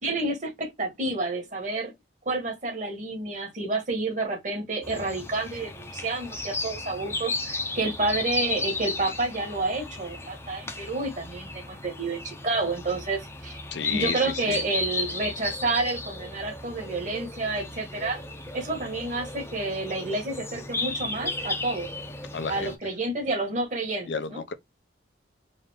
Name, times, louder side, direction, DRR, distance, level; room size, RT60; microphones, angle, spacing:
voice 1, 0.0-1.9 2.2-13.6 13.9-18.2 18.5-21.9 22.5-24.4, right 2 dB, 45° right, 1.6 m, -29 dB
sound 1, 4.8-22.8, left 3 dB, 15° left, 0.7 m, -34 dB
voice 2, 13.7-14.6 22.3-22.8 24.1-24.5, left 5 dB, 75° left, 0.6 m, -32 dB
4.0 x 2.6 x 3.4 m
head